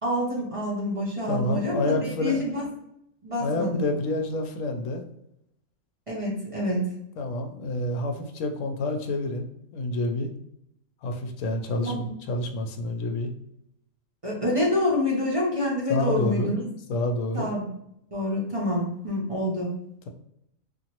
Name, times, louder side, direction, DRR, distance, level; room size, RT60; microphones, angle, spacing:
voice 1, 0.0-2.6 3.2-3.9 6.1-6.8 11.8-12.0 14.2-16.6 17.3-17.6 18.1-19.7, left 1 dB, 35° right, -4 dB, 0.5 m, -27 dB
voice 2, 1.3-2.4 3.4-5.0 7.2-10.3 11.0-13.3 15.9-16.6 16.9-17.5, left 2 dB, 70° left, 4 dB, 0.9 m, -28 dB
2.8 x 2.5 x 2.9 m, 0.78 s
omnidirectional pair, 1.5 m